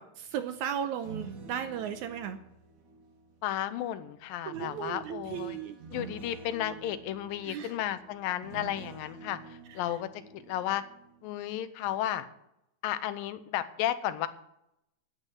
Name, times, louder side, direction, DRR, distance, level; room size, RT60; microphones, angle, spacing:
voice 1, 0.0-2.4 4.5-5.8 7.4-7.9 9.7-10.0, right 9 dB, 75° right, 10 dB, 1.8 m, -36 dB
sound 1, 0.8-3.7 4.5-11.4 11.8-12.1, right 3 dB, 40° right, 1.3 m, -48 dB
voice 2, 3.4-5.6 5.9-10.1 10.3-10.8 11.2-12.3 12.8-14.3, left 12 dB, 90° left, 12 dB, 2.5 m, -33 dB
10.0 x 9.1 x 8.0 m, 0.80 s
omnidirectional pair, 3.9 m